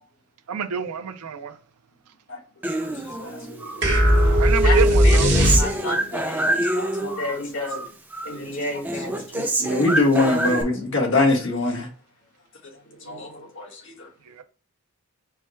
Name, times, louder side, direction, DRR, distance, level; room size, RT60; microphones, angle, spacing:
voice 1, 0.5-1.6 3.2-3.5 4.4-5.6 14.3-14.4, right 6 dB, 90° right, 0.5 m, -28 dB
Human voice, 2.6-3.8 4.2-7.4 7.6-8.4 8.6-10.6, right 1 dB, 10° right, 0.4 m, -27 dB
voice 2, 3.1-4.8 5.0-6.5 7.2-7.8 8.2-9.4 13.1-13.3, left 1 dB, 85° left, 1.9 m, -32 dB
sound 1, 3.8-6.1, equal, 50° right, 1.2 m, -17 dB
voice 3, 4.0-4.3 6.4-7.6 8.3-9.0 9.3-11.9 13.0-14.1, left 2 dB, 55° left, 1.4 m, -25 dB
4.6 x 2.3 x 4.3 m
head